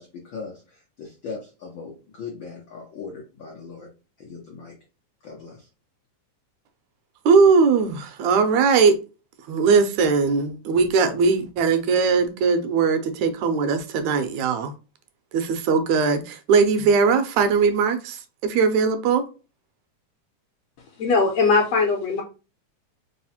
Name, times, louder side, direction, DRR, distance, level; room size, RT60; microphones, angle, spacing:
voice 1, 0.0-3.9 4.2-4.7 5.2-5.7, left 5 dB, 90° left, 1.0 m, -39 dB
voice 2, 7.3-8.9 9.5-14.7 15.3-19.2, right 5 dB, 80° right, 1.9 m, -20 dB
voice 3, 21.0-22.2, left 4 dB, 70° left, 1.6 m, -20 dB
4.8 x 2.0 x 4.2 m
omnidirectional pair, 3.4 m